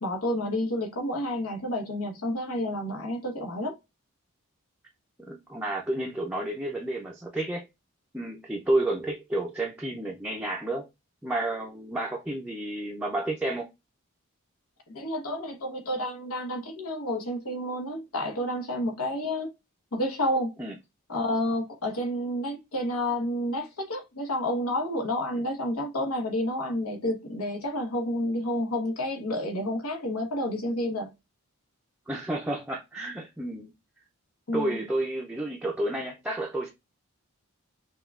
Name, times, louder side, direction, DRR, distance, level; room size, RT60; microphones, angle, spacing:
voice 1, 0.0-3.8 14.9-19.5 19.9-20.6 21.1-31.1 34.5-34.8, left 1 dB, 85° left, 1.0 m, -30 dB
voice 2, 5.3-7.6 8.1-10.9 11.2-13.7 20.6-20.7 25.3-25.4 32.1-33.7 34.5-36.7, right 1 dB, 5° right, 0.4 m, -31 dB
5.5 x 2.3 x 2.3 m
head